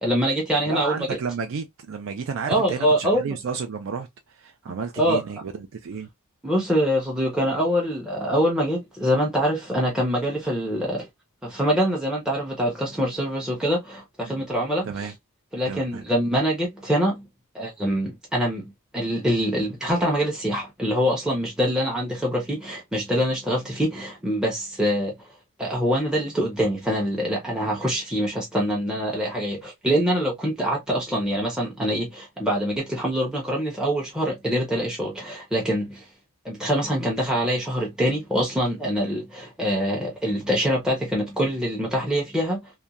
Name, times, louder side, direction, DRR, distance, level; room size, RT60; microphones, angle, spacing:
voice 1, 0.0-1.1 2.4-3.3 5.0-5.2 6.4-11.1 11.4-15.1 15.5-17.3 17.5-25.2 25.6-36.1 36.4-42.7, equal, 5° right, 0.6 m, -24 dB
voice 2, 0.7-6.1 14.2-14.4 14.8-15.1 15.7-16.0, right 5 dB, 60° right, 0.4 m, -32 dB
2.8 x 2.2 x 2.3 m
head